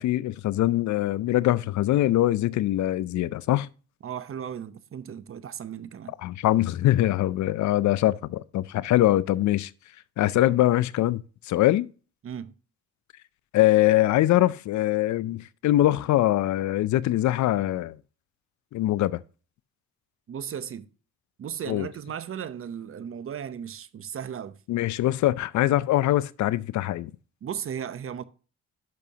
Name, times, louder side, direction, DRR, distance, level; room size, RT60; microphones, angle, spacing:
voice 1, 0.0-3.7 6.2-9.7 10.2-11.9 13.5-17.9 18.7-19.2 21.7-21.9 24.7-27.1, left 15 dB, 70° left, 0.5 m, -23 dB
voice 2, 4.0-6.1 12.2-12.5 20.3-20.9 21.4-24.6 27.4-28.2, right 8 dB, 45° right, 0.8 m, -36 dB
10.5 x 6.1 x 2.8 m
cardioid pair, 90°, 30 cm